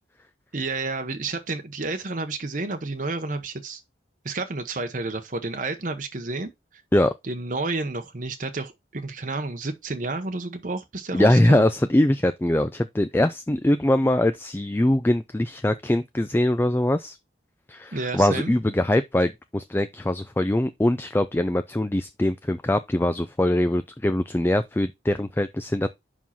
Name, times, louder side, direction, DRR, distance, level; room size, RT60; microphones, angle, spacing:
voice 1, 0.5-3.8 4.2-6.5 7.2-11.7 17.9-18.5, right 3 dB, 45° right, 0.9 m, -30 dB
voice 2, 11.1-17.2 17.7-25.9, left 1 dB, 10° left, 0.3 m, -22 dB
5.5 x 4.9 x 5.7 m
head